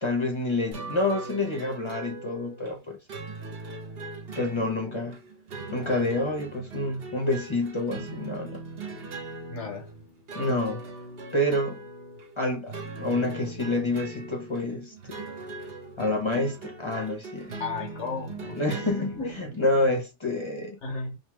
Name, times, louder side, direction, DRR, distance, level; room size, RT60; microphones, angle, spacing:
voice 1, 0.0-3.0 4.4-5.2 5.7-8.6 10.3-10.9 11.3-11.8 12.4-15.2 16.0-17.6 18.5-20.8, left 2 dB, 30° left, 0.7 m, -28 dB
sound 1, 0.7-19.9, right 3 dB, 60° right, 1.0 m, -40 dB
voice 2, 9.5-9.9 17.6-18.6 18.8-19.4 20.8-21.2, left 4 dB, 75° left, 1.3 m, -34 dB
2.8 x 2.6 x 3.3 m
omnidirectional pair, 1.2 m